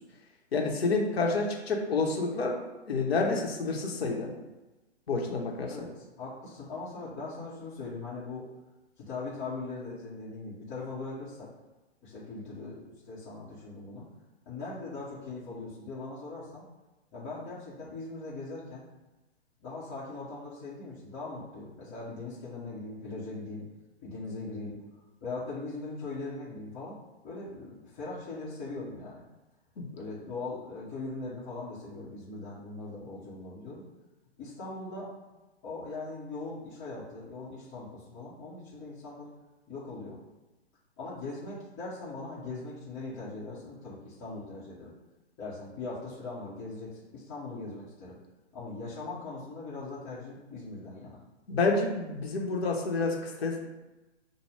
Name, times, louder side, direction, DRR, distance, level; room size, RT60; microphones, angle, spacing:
voice 1, 0.5-2.6 2.9-4.3 5.1-5.7 29.8-29.9 51.5-53.7, left 3 dB, 60° left, 0 dB, 1.0 m, -29 dB
voice 2, 5.6-8.5 9.0-11.5 12.0-14.1 14.5-16.6 17.1-18.8 19.6-23.6 24.0-24.8 25.2-26.9 27.2-29.2 29.9-33.8 34.4-39.3 39.7-40.2 41.0-44.9 45.4-48.2 48.5-51.2, left 3 dB, 20° left, -10 dB, 1.0 m, -40 dB
6.5 x 2.2 x 3.3 m, 1.1 s
figure-of-eight pair, 125°, 34 cm